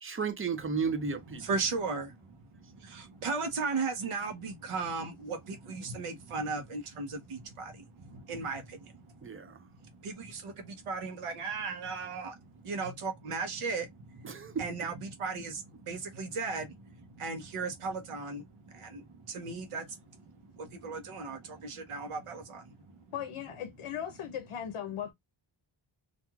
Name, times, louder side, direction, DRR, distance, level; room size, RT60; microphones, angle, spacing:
voice 1, 0.0-1.4 9.2-9.6 14.2-14.5, right 5 dB, 25° right, 0.5 m, -33 dB
voice 2, 1.3-23.0, right 4 dB, 90° right, 0.9 m, -37 dB
voice 3, 23.1-25.1, left 9 dB, 80° left, 0.7 m, -38 dB
2.9 x 2.5 x 2.2 m
wide cardioid pair, 105°, 50 cm